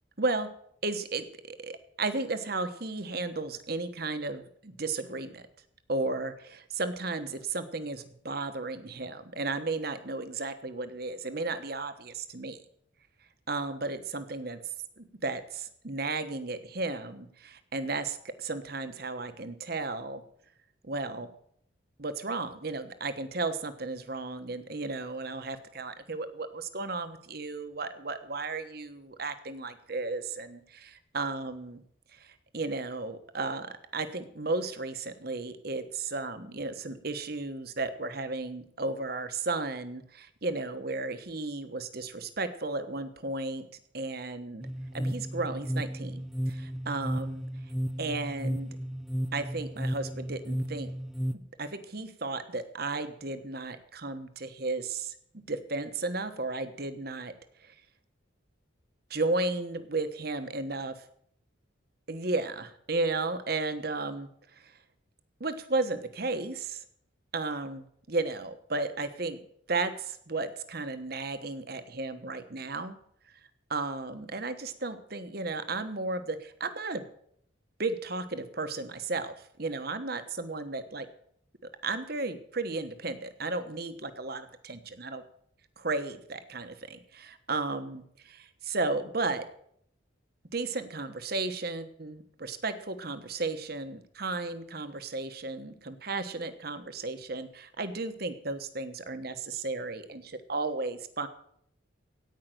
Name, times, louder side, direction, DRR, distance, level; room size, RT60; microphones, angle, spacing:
voice 1, 0.2-0.5 0.8-5.4 5.9-12.6 13.5-14.6 15.0-20.2 20.8-21.3 22.0-31.8 32.1-33.7 33.9-43.6 43.9-44.7 44.9-47.4 48.0-48.7 49.3-50.9 51.3-55.1 55.5-57.3 57.6-57.7 59.1-60.9 62.1-64.8 65.4-66.8 67.3-69.4 69.7-73.0 73.7-77.0 77.8-81.1 81.8-85.2 85.8-89.5 90.5-101.3, right 3 dB, 50° right, 10 dB, 1.2 m, -34 dB
sound 1, 44.6-51.4, equal, ahead, 0.5 m, -34 dB
17.0 x 5.7 x 9.1 m, 0.68 s
head